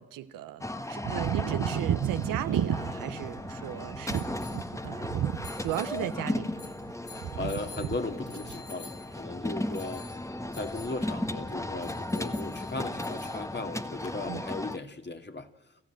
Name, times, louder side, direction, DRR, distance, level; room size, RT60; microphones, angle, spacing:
voice 1, 0.0-4.3 4.8-5.1 5.6-6.7 14.3-14.4, right 12 dB, 85° right, 11 dB, 1.0 m, -36 dB
sound 1, 0.6-14.8, left 1 dB, 10° left, 1.3 m, -36 dB
sound 2, 1.0-6.0 6.3-6.9 7.2-8.0 8.3-8.6, right 10 dB, 60° right, 0.8 m, -32 dB
sound 3, 2.6-14.2, left 3 dB, 85° left, 4.9 m, -52 dB
voice 2, 7.1-10.1 10.5-15.5, left 3 dB, 35° left, 6 dB, 2.3 m, -37 dB
27.0 x 14.5 x 9.0 m, 1.0 s
hypercardioid pair, 40°, 32 cm